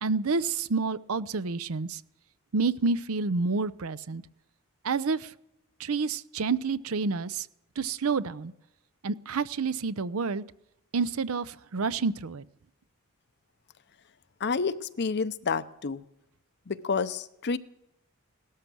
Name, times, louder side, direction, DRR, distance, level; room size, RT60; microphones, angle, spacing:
voice 1, 0.0-2.0 2.5-4.2 4.8-5.3 5.8-7.5 7.8-8.5 9.0-10.4 10.9-12.4, right 4 dB, 70° right, 16 dB, 0.6 m, -29 dB
voice 2, 14.4-16.0 16.7-17.6, left 5 dB, 50° left, 14 dB, 0.7 m, -29 dB
17.5 x 13.0 x 6.2 m, 0.85 s
head